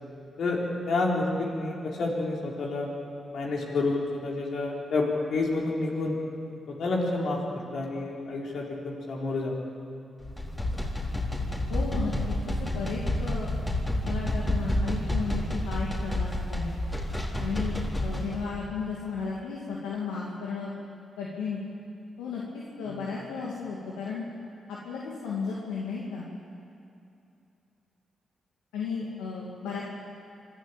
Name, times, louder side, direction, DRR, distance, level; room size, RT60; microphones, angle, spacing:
voice 1, 0.9-2.9 3.3-6.1 6.7-9.5 22.8-23.1, left 3 dB, 70° left, -2 dB, 4.2 m, -29 dB
sound 1, 10.2-18.4, left 1 dB, 25° left, 4.2 m, -29 dB
voice 2, 11.7-13.5 14.1-16.7 17.4-17.7 18.0-20.7 21.2-21.6 22.2-22.4 22.8-24.2 24.7-26.3 28.7-29.8, left 5 dB, 85° left, -4 dB, 2.4 m, -34 dB
25.0 x 13.5 x 8.8 m, 2.7 s
hypercardioid pair, 40°, 0 cm